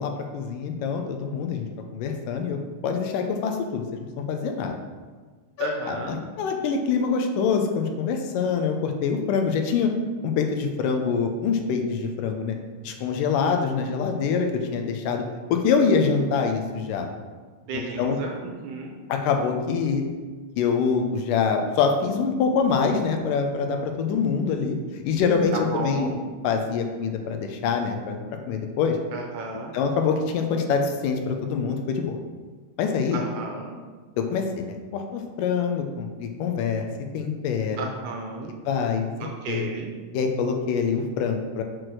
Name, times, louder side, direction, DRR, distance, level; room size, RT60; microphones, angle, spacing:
voice 1, 0.0-1.7 1.9-2.6 2.8-4.8 5.6-9.9 10.2-12.6 12.8-15.2 15.5-17.1 17.7-18.2 19.1-20.0 20.6-26.2 26.4-28.2 28.5-29.0 29.7-32.2 32.8-33.2 34.2-36.9 37.1-37.9 38.4-39.1 39.5-39.7 40.1-41.6, left 5 dB, 80° left, 4 dB, 2.2 m, -25 dB
voice 2, 5.6-6.2 17.7-18.9 25.5-26.2 29.1-29.7 33.1-33.7 37.8-38.5 39.2-39.9, right 3 dB, 75° right, 1 dB, 2.0 m, -33 dB
6.1 x 4.8 x 6.2 m, 1.4 s
omnidirectional pair, 4.0 m